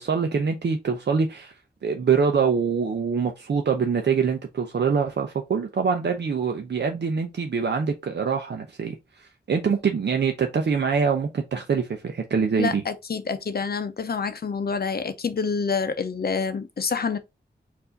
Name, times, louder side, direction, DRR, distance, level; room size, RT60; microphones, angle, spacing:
voice 1, 0.0-1.5 1.8-12.8, right 6 dB, 70° right, 0.6 m, -24 dB
voice 2, 12.6-17.2, left 5 dB, 60° left, 0.6 m, -27 dB
4.6 x 2.6 x 3.9 m
wide cardioid pair, 95°, 18 cm